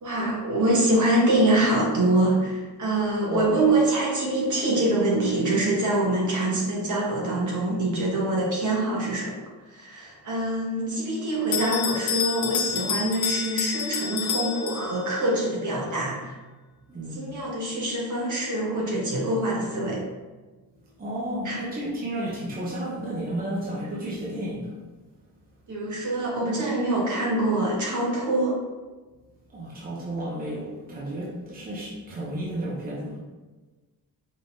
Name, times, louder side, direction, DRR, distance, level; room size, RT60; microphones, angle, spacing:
voice 1, 0.0-9.4 9.7-16.3 17.1-20.0 21.4-21.6 25.7-28.6, right 1 dB, 50° right, -3 dB, 1.2 m, -24 dB
Bell, 11.5-15.2, left 7 dB, 75° left, 0.5 m, -29 dB
voice 2, 16.9-17.3 21.0-24.8 29.5-33.2, right 1 dB, 25° right, -6 dB, 0.7 m, -32 dB
5.2 x 3.5 x 2.6 m, 1.2 s
wide cardioid pair, 175°, 38 cm